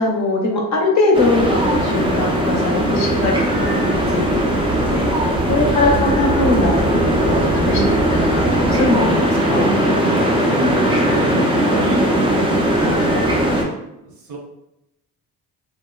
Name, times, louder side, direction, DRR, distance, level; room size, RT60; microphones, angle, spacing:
voice 1, 0.0-9.7, left 2 dB, 45° left, 0 dB, 0.6 m, -21 dB
sound 1, 1.1-13.6, right 1 dB, 15° right, 0.4 m, -18 dB
voice 2, 10.4-11.4 11.7-12.1 12.9-13.3 14.0-14.4, right 2 dB, 60° right, -2 dB, 0.9 m, -33 dB
2.8 x 2.0 x 2.3 m, 0.87 s
cardioid pair, 100°, 41 cm